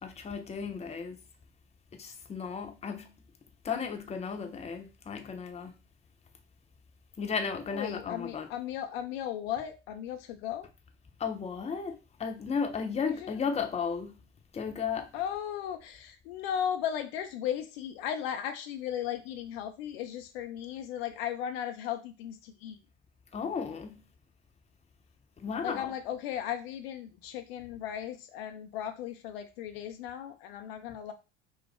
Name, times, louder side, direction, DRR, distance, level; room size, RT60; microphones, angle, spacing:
voice 1, 0.0-1.2 1.9-3.1 3.6-5.7 7.2-8.5 11.2-14.2 14.5-15.1 23.3-24.0 25.4-25.9, left 6 dB, 20° left, 0.7 m, -34 dB
voice 2, 7.7-10.7 13.1-13.3 15.1-22.8 25.6-31.1, left 10 dB, 60° left, 0.5 m, -36 dB
5.5 x 2.0 x 3.2 m
figure-of-eight pair, 70°, 35 cm